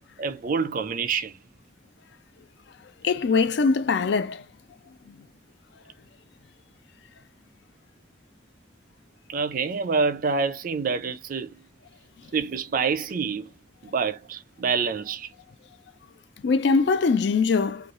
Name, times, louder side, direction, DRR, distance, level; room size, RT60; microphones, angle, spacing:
voice 1, 0.2-1.4 9.3-11.6 12.3-13.5 13.8-15.3 16.8-16.9, right 5 dB, 50° right, 0.4 m, -27 dB
voice 2, 3.0-4.4 5.1-5.2 16.4-17.9, left 4 dB, 65° left, 0.4 m, -22 dB
3.1 x 2.3 x 2.4 m
head